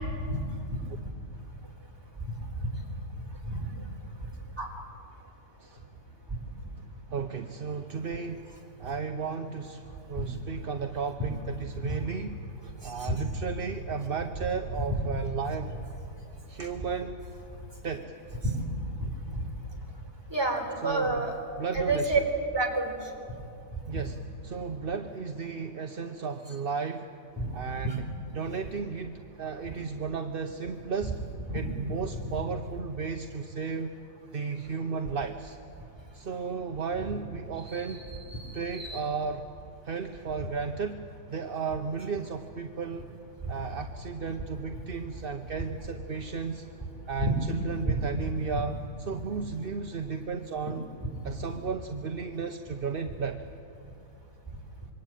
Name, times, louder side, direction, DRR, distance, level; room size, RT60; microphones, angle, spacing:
voice 1, 2.3-2.8 3.2-3.9 4.2-4.8 9.9-10.3 11.2-11.3 11.7-12.0 12.7-13.3 18.4-18.6 19.0-19.5 20.3-21.4 21.7-22.2 22.5-23.4 23.7-23.8 27.4-27.5 27.8-28.0 31.5-31.7 37.1-37.2 37.7-39.0 40.4-40.5 43.4-43.5 47.2-47.4 47.9-48.0 51.2-51.5, right 2 dB, 15° right, 0 dB, 4.1 m, -31 dB
voice 2, 7.1-8.4 8.8-9.8 10.1-12.4 12.8-15.7 16.5-17.2 17.8-18.1 20.8-21.3 21.6-22.1 23.9-24.2 24.4-27.1 27.5-28.0 28.3-31.2 31.5-33.9 34.3-35.6 36.1-38.0 38.5-39.5 39.8-43.1 43.5-46.7 47.1-48.8 49.1-50.8 51.2-53.4, right 5 dB, 45° right, 5 dB, 0.9 m, -34 dB
26.0 x 23.0 x 9.1 m, 2.6 s
omnidirectional pair, 1.8 m